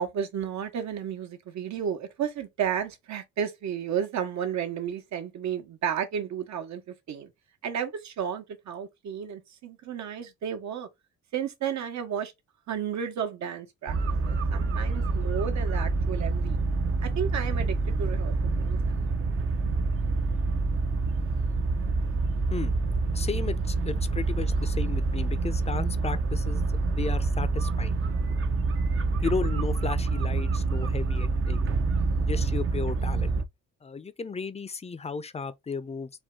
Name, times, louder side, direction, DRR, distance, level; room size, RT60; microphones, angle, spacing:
voice 1, 0.0-7.3 7.6-10.9 11.3-12.3 12.7-13.9 14.2-16.6 17.0-19.0, right 8 dB, 65° right, 1.1 m, -32 dB
sound 1, 13.9-33.4, right 3 dB, 45° right, 0.7 m, -27 dB
voice 2, 23.1-27.9 29.2-31.7 32.2-33.4 33.8-36.1, left 4 dB, 20° left, 0.6 m, -34 dB
4.5 x 2.2 x 3.7 m
cardioid pair, 90°, 30 cm